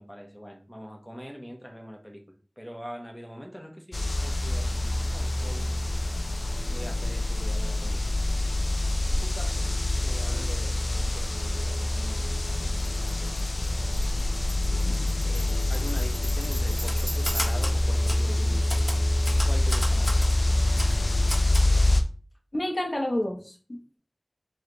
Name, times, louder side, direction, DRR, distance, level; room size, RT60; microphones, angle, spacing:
voice 1, 0.0-2.2 2.6-5.8 6.7-8.1 9.1-9.7 10.0-12.7 13.0-13.5 14.7-18.8 19.4-20.2, equal, 5° left, 1.0 m, -43 dB
sound 1, 3.9-22.0, left 1 dB, 85° left, 0.5 m, -26 dB
Tambourine, 12.8-17.8, right 1 dB, 40° right, 0.5 m, -41 dB
Typewriter, 16.7-17.8 18.1-18.2 18.7-20.3 20.8-20.9 21.3-21.7, equal, 25° left, 1.3 m, -33 dB
voice 2, 22.5-24.0, left 1 dB, 60° left, 0.9 m, -30 dB
3.2 x 3.1 x 3.9 m
wide cardioid pair, 45°, 0 cm